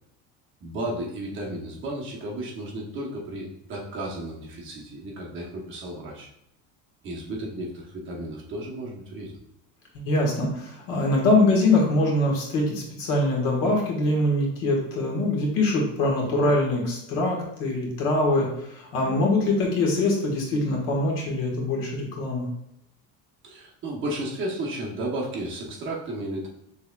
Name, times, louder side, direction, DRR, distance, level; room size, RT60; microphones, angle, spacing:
voice 1, 0.6-6.3 7.0-9.3 23.4-26.5, right 1 dB, 30° right, -3 dB, 0.9 m, -33 dB
voice 2, 10.0-22.5, left 2 dB, 70° left, -1 dB, 1.6 m, -23 dB
5.9 x 3.5 x 2.3 m, 0.77 s
cardioid pair, 180°, 37 cm